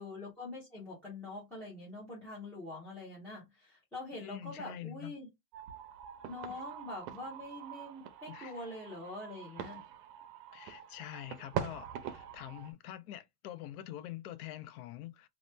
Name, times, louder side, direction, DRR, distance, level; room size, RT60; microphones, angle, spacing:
voice 1, 0.0-5.3 6.3-9.8, left 2 dB, 5° left, 0.5 m, -44 dB
voice 2, 4.2-5.1 6.5-6.6 8.3-8.5 10.5-15.3, left 12 dB, 65° left, 0.6 m, -45 dB
sound 1, 5.5-12.7, right 9 dB, 85° right, 0.8 m, -44 dB
2.9 x 2.0 x 3.2 m
supercardioid pair, 155°, 48 cm